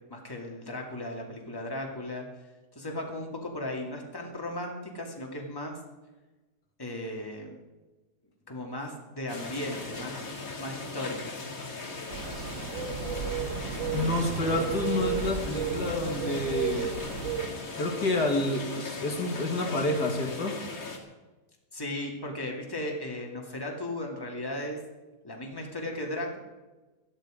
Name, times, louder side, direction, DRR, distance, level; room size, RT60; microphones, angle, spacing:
voice 1, 0.1-2.3 2.7-5.8 6.8-7.6 8.5-10.3 10.6-11.4 21.7-24.8 25.2-26.4, left 1 dB, 15° left, 0 dB, 2.4 m, -36 dB
sound 1, 9.3-21.0, left 3 dB, 60° left, 2.7 m, -39 dB
sound 2, 12.1-17.5, right 7 dB, 55° right, 1.4 m, -33 dB
voice 2, 13.9-16.9 17.8-20.6, left 2 dB, 85° left, 2 dB, 2.8 m, -29 dB
16.5 x 12.5 x 5.1 m, 1.2 s
omnidirectional pair, 1.7 m